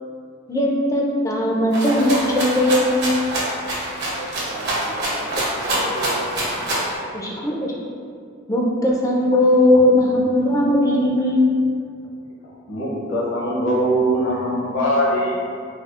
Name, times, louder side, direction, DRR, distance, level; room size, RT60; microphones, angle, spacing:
voice 1, 0.5-3.0 7.1-7.7 8.5-11.4, left 1 dB, 15° left, -2 dB, 0.4 m, -18 dB
Rattle (instrument), 1.7-6.9, right 1 dB, 55° right, 0.9 m, -25 dB
voice 2, 4.2-5.4 5.7-6.4 6.8-7.4, right 2 dB, 75° right, -1 dB, 0.4 m, -35 dB
voice 3, 12.7-15.3, equal, 70° left, -4 dB, 0.8 m, -21 dB
4.1 x 2.3 x 2.4 m, 2.3 s
head